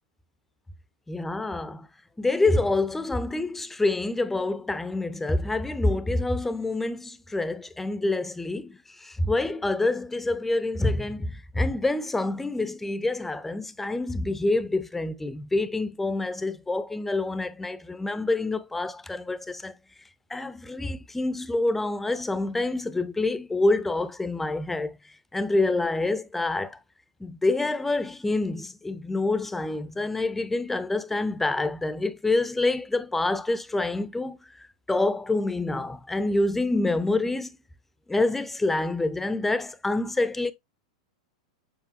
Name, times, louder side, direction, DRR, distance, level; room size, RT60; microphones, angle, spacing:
voice 1, 1.1-1.9 2.2-19.7 20.3-25.0 25.3-26.8 27.2-34.4 34.9-37.5 38.1-40.5, left 2 dB, 5° left, 0.6 m, -27 dB
7.4 x 4.8 x 2.6 m
figure-of-eight pair, 95°, 3 cm